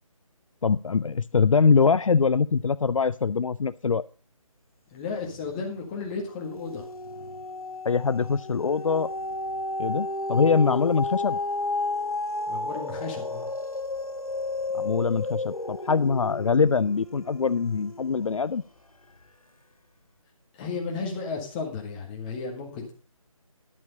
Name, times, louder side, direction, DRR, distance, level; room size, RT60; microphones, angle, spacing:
voice 1, 0.6-4.0 7.8-9.1 9.8-11.4 14.7-18.6, left 5 dB, 70° left, 17 dB, 0.4 m, -23 dB
voice 2, 4.9-6.9 12.5-13.5 20.5-22.9, left 4 dB, 15° left, 2 dB, 1.7 m, -34 dB
sound 1, 5.2-5.8 6.1-18.6 19.2-19.3, left 2 dB, 90° left, 1.2 m, -33 dB
11.0 x 7.4 x 5.3 m, 0.36 s
figure-of-eight pair, 155°, 18 cm